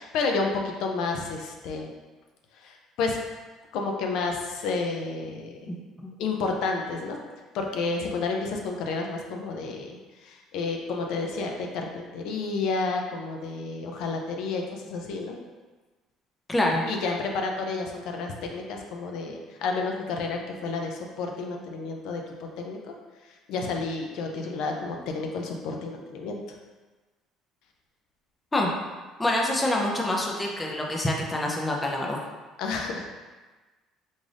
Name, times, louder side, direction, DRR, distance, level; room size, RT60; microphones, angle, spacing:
voice 1, 0.0-1.9 2.6-3.2 3.7-5.7 6.2-7.2 7.5-10.0 10.2-15.4 16.9-22.2 22.6-22.8 23.5-26.4 32.6-33.1, left 4 dB, 70° left, 2 dB, 0.5 m, -30 dB
voice 2, 5.7-6.1 16.5-16.8 28.5-28.7 29.2-32.2, left 1 dB, 10° left, -1 dB, 0.4 m, -26 dB
3.8 x 2.4 x 3.3 m, 1.3 s
cardioid pair, 135°, 0 cm